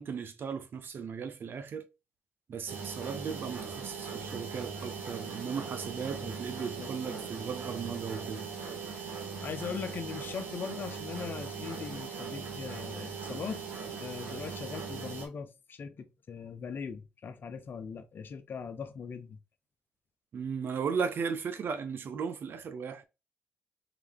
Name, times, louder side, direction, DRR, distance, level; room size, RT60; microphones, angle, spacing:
voice 1, 0.0-1.9 2.5-8.4 20.3-23.0, right 6 dB, 60° right, 0.9 m, -36 dB
sound 1, 2.7-15.3, right 5 dB, 80° right, 1.6 m, -40 dB
voice 2, 6.8-7.2 9.4-13.6 14.0-19.4, left 6 dB, 55° left, 0.9 m, -40 dB
3.9 x 3.4 x 3.5 m
supercardioid pair, 60°, 4 cm